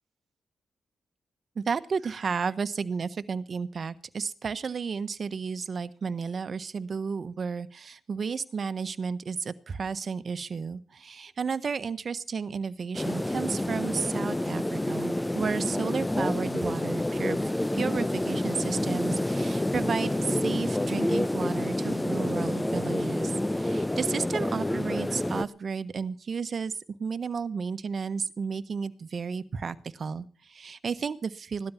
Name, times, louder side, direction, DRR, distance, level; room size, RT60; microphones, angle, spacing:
voice 1, 1.5-17.4 17.7-31.7, right 5 dB, 55° right, 13 dB, 1.3 m, -32 dB
sound 1, 12.9-25.4, left 1 dB, 15° left, 0.9 m, -28 dB
17.5 x 12.5 x 5.9 m, 0.40 s
supercardioid pair, 50°, 0 cm